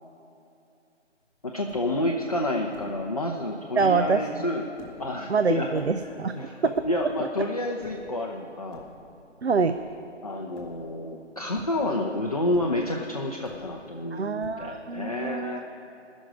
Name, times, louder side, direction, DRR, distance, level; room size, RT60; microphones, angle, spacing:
sound 1, 1.2-1.3 1.5-2.1 2.7-3.1 3.6-4.2 4.8-5.2 5.8-6.3 6.7-7.2 7.8-8.2 8.6-9.3 9.6-10.1 10.5-11.1 11.5-12.1 12.5-13.0 13.4-14.0 14.4-14.9, left 1 dB, 5° left, 1.2 m, -49 dB
voice 1, 1.4-4.6 5.0-5.7 6.4-8.9 10.2-15.6, left 1 dB, 30° left, 0 dB, 0.6 m, -29 dB
voice 2, 3.8-4.4 5.3-6.4 7.2-7.3 9.4-9.7 14.1-15.6, right 5 dB, 60° right, 9 dB, 0.6 m, -25 dB
18.5 x 6.3 x 9.8 m, 2.7 s
figure-of-eight pair, 155°, 37 cm